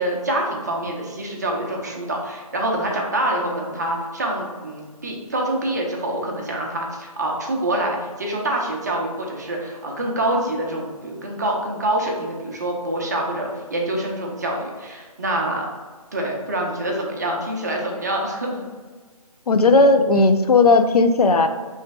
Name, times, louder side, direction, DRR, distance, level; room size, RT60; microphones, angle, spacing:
voice 1, 0.0-15.7 16.1-18.6, right 1 dB, 30° right, -1 dB, 0.6 m, -26 dB
voice 2, 19.5-21.5, left 3 dB, 80° left, 8 dB, 0.5 m, -15 dB
3.1 x 3.1 x 4.5 m, 1.5 s
figure-of-eight pair, 165°, 19 cm